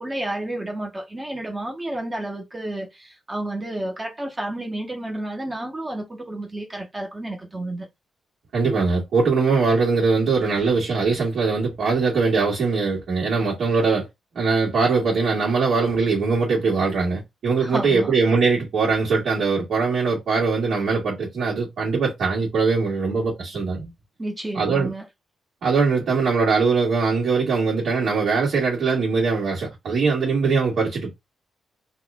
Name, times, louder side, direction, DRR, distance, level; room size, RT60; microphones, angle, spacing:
voice 1, 0.0-7.9 17.6-18.1 24.2-25.1, right 1 dB, 20° right, 1.1 m, -31 dB
voice 2, 8.5-14.1 14.3-23.9 24.5-24.9 25.6-31.1, right 4 dB, 65° right, 2.0 m, -21 dB
4.0 x 2.6 x 3.6 m
cardioid pair, 100°, 0 cm